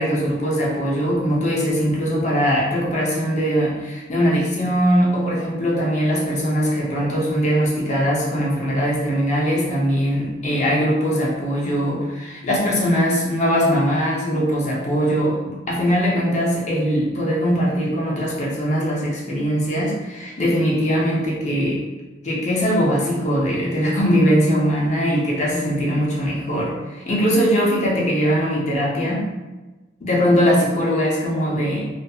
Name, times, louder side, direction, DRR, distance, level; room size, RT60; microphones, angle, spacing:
voice 1, 0.0-21.8 22.2-29.3 30.0-31.9, equal, 35° left, -4 dB, 0.6 m, -21 dB
2.5 x 2.3 x 2.7 m, 1.2 s
head